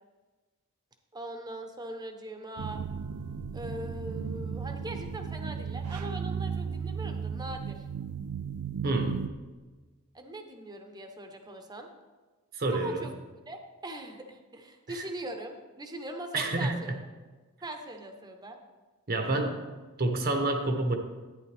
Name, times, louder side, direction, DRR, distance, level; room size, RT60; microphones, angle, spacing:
voice 1, 1.1-2.8 3.5-7.9 10.1-11.9 12.7-13.1 13.5-16.9 17.6-18.6, right 1 dB, 20° right, 5 dB, 0.9 m, -41 dB
sound 1, 2.6-9.3, right 6 dB, 75° right, 0.4 m, -35 dB
voice 2, 8.8-9.3 12.5-13.1 14.9-15.0 16.3-16.8 19.1-19.6 20.0-20.9, right 2 dB, 45° right, 4 dB, 1.0 m, -28 dB
11.5 x 9.8 x 3.4 m, 1.3 s
head